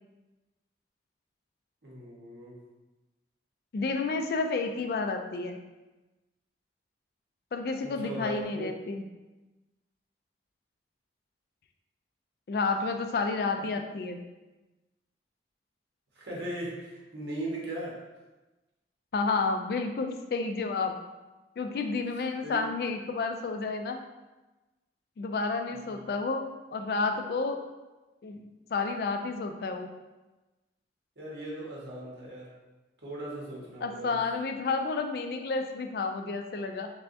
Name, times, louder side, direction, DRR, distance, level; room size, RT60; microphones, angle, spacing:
voice 1, 1.8-2.5 7.8-8.7 16.1-18.0 22.4-22.6 25.7-26.0 31.2-32.5 33.0-34.2, right 1 dB, 70° right, -5 dB, 1.1 m, -38 dB
voice 2, 3.7-5.6 7.5-9.0 12.5-14.2 19.1-21.0 21.6-24.0 25.2-27.6 28.2-29.9 33.8-36.9, left 4 dB, 60° left, 5 dB, 0.3 m, -31 dB
3.4 x 3.4 x 2.6 m, 1.1 s
head